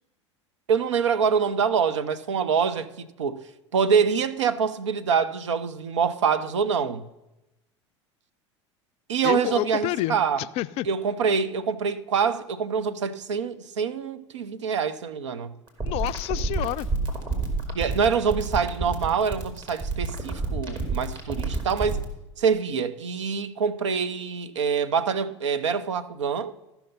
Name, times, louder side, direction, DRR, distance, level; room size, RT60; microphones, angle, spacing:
voice 1, 0.7-3.4 3.7-7.0 9.1-10.4 10.9-15.5 17.7-22.0 22.4-26.5, right 6 dB, 70° right, 0.6 m, -25 dB
voice 2, 9.2-10.9 15.8-16.9, left 15 dB, 40° left, 0.4 m, -29 dB
sound 1, 15.7-22.0, right 3 dB, 30° right, 2.4 m, -28 dB
13.0 x 5.8 x 5.5 m
figure-of-eight pair, 75°, 16 cm